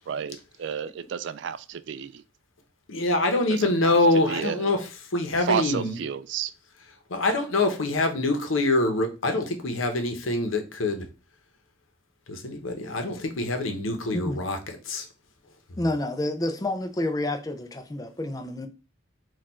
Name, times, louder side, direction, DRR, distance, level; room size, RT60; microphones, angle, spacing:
voice 1, 0.0-2.2 3.5-3.9 4.3-4.7 5.5-6.5, right 7 dB, 65° right, 0.3 m, -31 dB
voice 2, 2.9-6.0 7.1-11.1 12.3-15.1, left 2 dB, 90° left, 0.8 m, -25 dB
voice 3, 15.8-18.7, left 1 dB, 20° left, 0.4 m, -29 dB
4.3 x 2.4 x 4.3 m
head